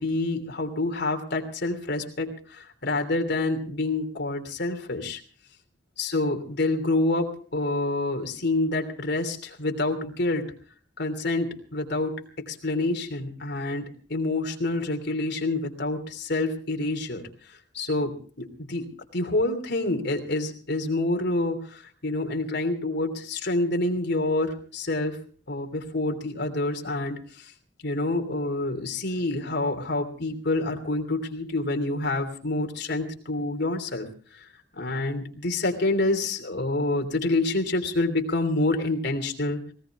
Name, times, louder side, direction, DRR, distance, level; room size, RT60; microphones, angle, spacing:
voice 1, 0.0-5.2 6.0-10.5 11.0-17.3 17.7-25.2 25.5-27.5 27.8-39.6, left 2 dB, 65° left, 4 dB, 3.1 m, -27 dB
19.0 x 18.5 x 3.6 m, 0.43 s
head